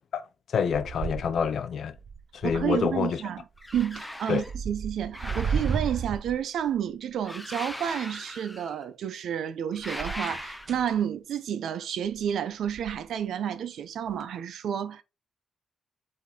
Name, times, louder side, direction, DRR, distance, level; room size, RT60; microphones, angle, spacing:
voice 1, 0.1-2.0 2.3-3.2 4.3-4.4, left 7 dB, 65° left, 0.7 m, -27 dB
sound 1, 0.7-1.6 1.9-3.0 3.6-4.0 4.4-6.8 9.8-11.0 12.1-12.3 12.7-13.1 14.1-14.2, right 6 dB, 45° right, 0.6 m, -34 dB
voice 2, 2.4-3.4 3.7-15.0, right 9 dB, 85° right, 0.7 m, -30 dB
sound 2, 3.6-4.5 5.1-6.2 7.2-8.8 9.7-11.0, left 1 dB, 5° left, 0.6 m, -39 dB
7.5 x 3.7 x 3.7 m
wide cardioid pair, 140°, 0 cm